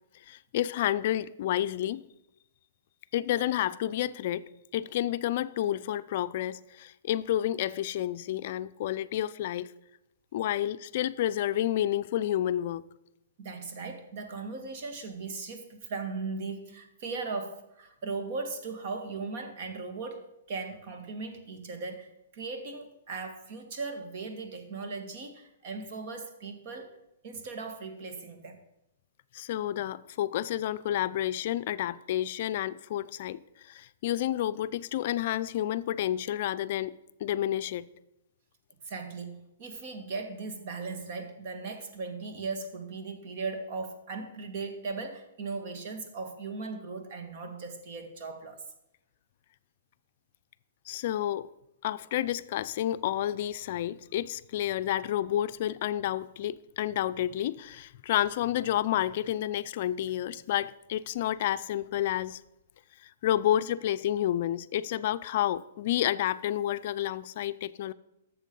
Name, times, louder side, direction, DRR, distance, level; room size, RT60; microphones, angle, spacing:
voice 1, 0.3-2.1 3.1-9.7 10.3-12.8 29.3-37.8 50.9-51.5 51.8-62.4 63.0-67.9, left 12 dB, 55° left, 0.4 m, -30 dB
voice 2, 13.4-26.9 27.2-28.6 38.8-48.6, right 4 dB, 55° right, 2.0 m, -38 dB
12.0 x 7.1 x 5.4 m
hypercardioid pair, 130°, 0 cm